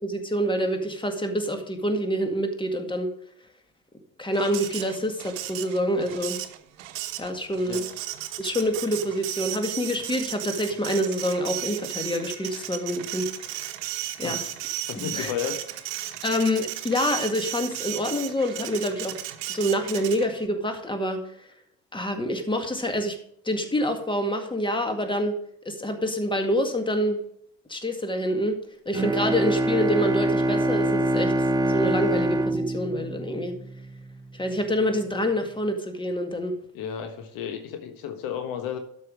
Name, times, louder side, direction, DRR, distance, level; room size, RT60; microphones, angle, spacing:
voice 1, 0.0-3.1 4.2-6.4 7.2-7.8 8.4-13.6 14.2-14.4 14.9-15.3 16.2-19.1 19.5-21.2 21.9-23.2 23.5-25.3 25.7-27.2 27.7-28.6 28.9-31.3 31.7-33.5 34.3-36.6, equal, 10° left, 5 dB, 2.0 m, -26 dB
Printer, 4.3-20.5, right 13 dB, 70° right, 1.0 m, -35 dB
voice 2, 14.9-15.6 36.7-38.8, left 9 dB, 60° left, 7 dB, 1.3 m, -32 dB
Bowed string instrument, 28.9-33.9, right 1 dB, 10° right, 0.8 m, -25 dB
12.0 x 5.6 x 4.8 m, 0.69 s
figure-of-eight pair, 55°, 39 cm